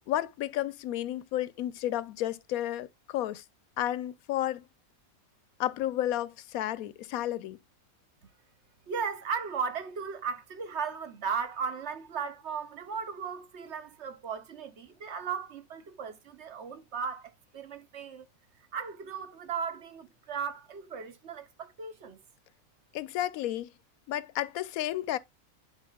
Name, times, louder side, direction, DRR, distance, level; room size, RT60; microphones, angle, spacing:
voice 1, 0.1-3.4 3.8-4.6 5.6-7.6 22.9-23.7 24.1-25.2, left 13 dB, 85° left, 1.0 m, -32 dB
voice 2, 8.9-18.2 18.7-22.2, right 6 dB, 55° right, 1.1 m, -36 dB
10.5 x 4.4 x 2.3 m
omnidirectional pair, 1.5 m